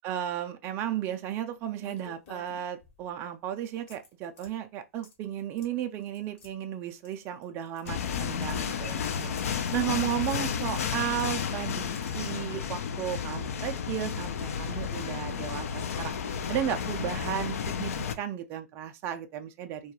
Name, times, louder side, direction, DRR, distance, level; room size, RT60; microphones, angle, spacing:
voice 1, 0.0-19.9, right 10 dB, 25° right, 0.3 m, -34 dB
sound 1, 1.8-3.1 3.9-4.5 5.0-5.3 5.6-5.7 6.0-6.5 7.0-8.2 8.4-9.8 10.1-11.3 11.9-12.1, left 5 dB, 45° left, 1.1 m, -52 dB
sound 2, 7.9-18.1, left 7 dB, 65° left, 0.4 m, -32 dB
2.3 x 2.2 x 2.9 m
hypercardioid pair, 130°, 8 cm